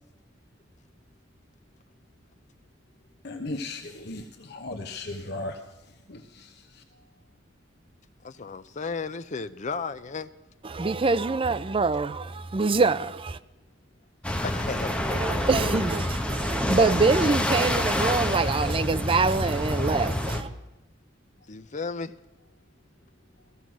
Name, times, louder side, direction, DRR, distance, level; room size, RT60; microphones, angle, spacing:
voice 1, 3.2-5.6 6.1-6.5, left 2 dB, 60° left, 1.0 m, -36 dB
voice 2, 8.2-10.3 14.4-15.8 17.2-17.4 21.5-22.1, left 4 dB, 40° left, 0.6 m, -34 dB
voice 3, 10.7-13.4 15.2-20.5, right 4 dB, 30° right, 0.5 m, -25 dB
sound 1, 14.2-20.4, left 1 dB, 5° left, 1.0 m, -27 dB
15.0 x 14.5 x 6.2 m
head